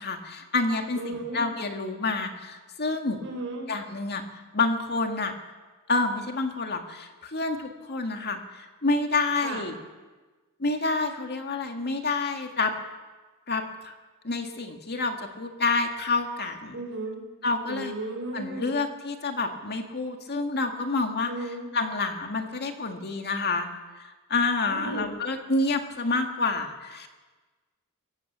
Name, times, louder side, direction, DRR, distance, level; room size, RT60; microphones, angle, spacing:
voice 1, 0.0-3.2 3.7-5.3 5.9-9.8 10.6-12.7 13.5-13.9 14.2-16.8 17.4-17.9 18.3-23.7 24.0-27.1, left 3 dB, 50° left, 5 dB, 1.9 m, -28 dB
voice 2, 1.0-1.5 3.2-3.7 9.4-9.6 16.7-17.2 17.7-18.7 21.3-21.7 24.6-25.1, right 2 dB, 60° right, 0 dB, 6.4 m, -35 dB
22.0 x 17.0 x 7.4 m, 1.3 s
head